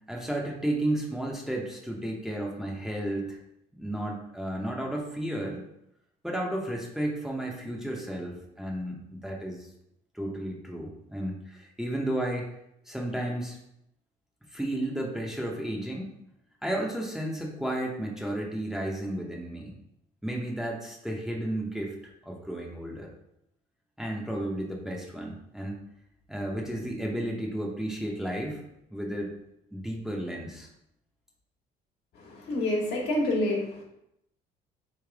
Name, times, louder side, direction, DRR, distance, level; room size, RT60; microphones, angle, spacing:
voice 1, 0.1-3.4 3.8-5.7 6.2-9.7 10.1-12.5 12.9-13.6 14.5-16.1 16.6-19.7 20.2-21.9 22.2-23.1 24.0-25.8 26.3-28.6 28.9-29.3 29.7-30.7, right 1 dB, 5° right, -2 dB, 0.7 m, -33 dB
voice 2, 32.1-33.8, left 1 dB, 75° left, -2 dB, 1.4 m, -28 dB
3.3 x 3.1 x 4.6 m, 0.80 s
cardioid pair, 110°, 17 cm